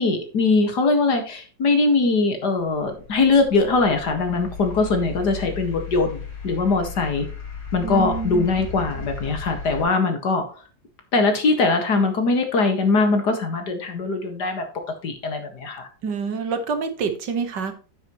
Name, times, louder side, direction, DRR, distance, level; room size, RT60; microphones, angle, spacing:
voice 1, 0.0-7.3 7.7-10.4 11.1-14.6 15.0-15.9, left 3 dB, 65° left, 5 dB, 2.3 m, -21 dB
sound 1, 2.6-9.8, left 5 dB, 85° left, 5.5 m, -36 dB
voice 2, 7.8-8.5 16.0-17.7, right 5 dB, 70° right, 7 dB, 1.9 m, -27 dB
9.5 x 8.7 x 3.1 m, 0.37 s
omnidirectional pair, 1.9 m